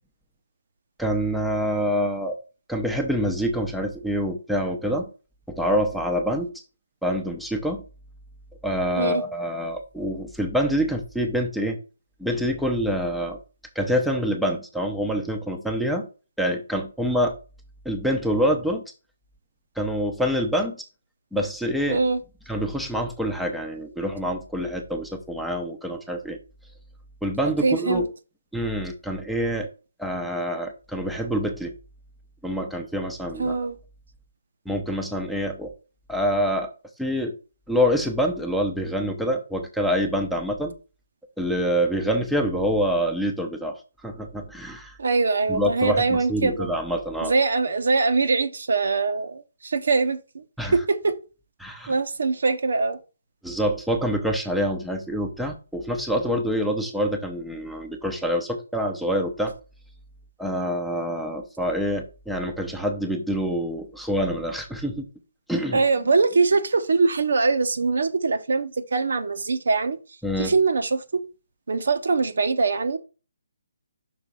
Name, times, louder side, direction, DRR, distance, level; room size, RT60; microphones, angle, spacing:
voice 1, 1.0-2.4 2.7-5.1 5.5-6.5 7.0-7.8 8.6-11.8 12.2-13.4 13.7-16.1 16.4-17.4 17.8-18.8 19.8-20.8 21.3-22.0 22.5-26.4 27.2-28.1 28.5-29.7 30.0-31.7 32.4-33.6 34.7-35.7 36.1-36.7 37.0-37.4 37.7-40.7 41.4-45.0 45.5-47.3 50.6-50.7 51.6-51.9 53.4-59.5 60.4-65.1 65.5-65.8 70.2-70.5, equal, ahead, 0.8 m, -26 dB
voice 2, 21.9-22.2 27.6-28.1 33.4-33.8 45.0-46.7 47.2-50.4 50.7-51.2 51.9-53.0 65.7-70.0 70.4-71.2 71.7-73.0, right 4 dB, 75° right, 1.0 m, -22 dB
6.0 x 3.9 x 5.3 m
hypercardioid pair, 160°, 0 cm